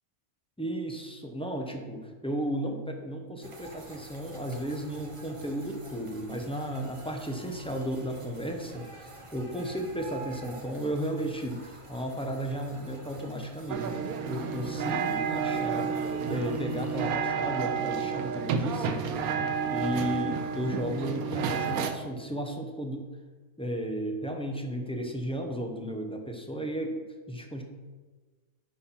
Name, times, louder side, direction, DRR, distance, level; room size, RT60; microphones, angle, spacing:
voice 1, 0.6-13.9 14.2-16.0 16.3-19.0 19.7-23.0 23.6-27.0 27.3-27.6, equal, 5° left, 2 dB, 0.6 m, -34 dB
sound 1, 3.4-17.2, right 2 dB, 25° right, 0.8 m, -49 dB
sound 2, 13.7-21.9, right 6 dB, 85° right, 1.2 m, -30 dB
9.5 x 4.3 x 5.7 m, 1.3 s
omnidirectional pair, 1.5 m